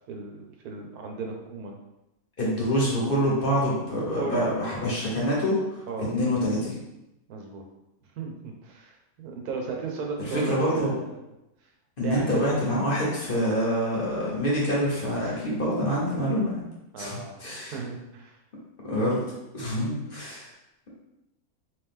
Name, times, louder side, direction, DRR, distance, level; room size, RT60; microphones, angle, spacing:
voice 1, 0.1-1.8 4.1-4.5 5.9-6.1 7.3-7.6 8.2-11.2 12.0-12.4 16.9-17.4 17.7-18.3, right 4 dB, 85° right, 1 dB, 1.2 m, -35 dB
voice 2, 2.4-6.8 10.2-10.9 12.0-16.6 17.0-17.7 18.8-19.2 19.5-20.5, equal, 45° left, -5 dB, 0.9 m, -26 dB
3.1 x 3.1 x 3.5 m, 0.92 s
omnidirectional pair, 1.6 m